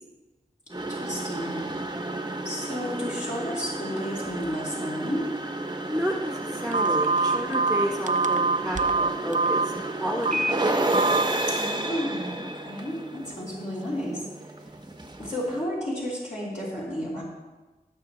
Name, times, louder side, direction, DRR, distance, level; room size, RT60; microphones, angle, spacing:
sound 1, 0.7-15.6, right 2 dB, 25° right, 0.9 m, -32 dB
voice 1, 0.9-1.7 2.4-5.3 11.5-14.3 15.2-17.2, equal, 50° left, -8 dB, 3.6 m, -32 dB
voice 2, 5.9-9.7 10.0-10.6 14.9-15.1, equal, ahead, 0 dB, 1.2 m, -31 dB
Telephone, 6.7-9.7 10.2-10.5 10.9-11.2, right 3 dB, 50° right, 0.6 m, -23 dB
19.5 x 6.7 x 3.2 m, 1.2 s
wide cardioid pair, 50°, 16 cm